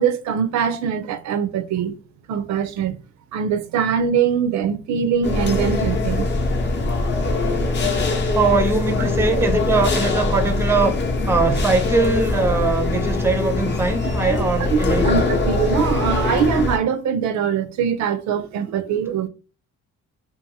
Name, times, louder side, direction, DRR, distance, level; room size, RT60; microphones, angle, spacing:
voice 1, 0.0-2.0 2.3-3.0 3.3-6.3 14.3-19.3, right 7 dB, 65° right, 0.4 m, -22 dB
sound 1, 5.2-16.8, left 3 dB, 35° left, 0.7 m, -22 dB
voice 2, 8.3-11.0 11.3-15.2, right 3 dB, 10° right, 0.5 m, -21 dB
2.6 x 2.4 x 2.6 m
cardioid pair, 90°, 30 cm